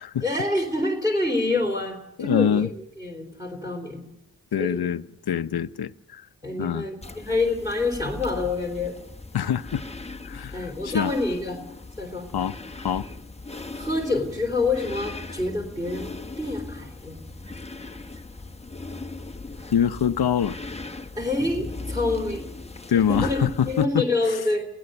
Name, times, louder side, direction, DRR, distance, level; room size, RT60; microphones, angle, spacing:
voice 1, 0.2-4.0 4.6-4.8 6.4-9.0 10.5-11.6 12.0-12.3 13.7-16.1 16.4-17.2 21.2-22.5 23.0-24.7, left 2 dB, 10° right, 3.8 m, -27 dB
voice 2, 2.2-2.7 4.5-6.3 6.6-6.8 9.3-9.8 10.3-11.1 12.3-12.6 12.8-13.1 19.7-20.6 22.9-24.1, left 8 dB, 75° left, 0.7 m, -24 dB
sound 1, 7.0-23.8, left 3 dB, 15° left, 1.0 m, -38 dB
28.5 x 17.0 x 6.9 m
wide cardioid pair, 75°, 38 cm